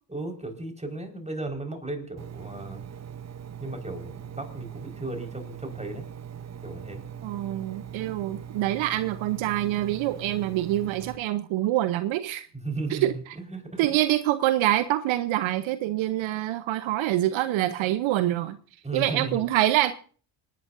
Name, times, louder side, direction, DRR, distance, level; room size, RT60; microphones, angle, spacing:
voice 1, 0.1-2.8 3.6-6.0 6.6-7.0 12.5-14.0 18.8-19.4, right 2 dB, 15° right, 4.8 m, -35 dB
Engine, 2.2-11.2, right 8 dB, 35° right, 0.9 m, -41 dB
voice 2, 7.2-12.5 12.9-13.1 13.8-18.6 18.9-19.9, right 14 dB, 70° right, 0.9 m, -25 dB
26.5 x 10.5 x 2.6 m
hypercardioid pair, 50°, 48 cm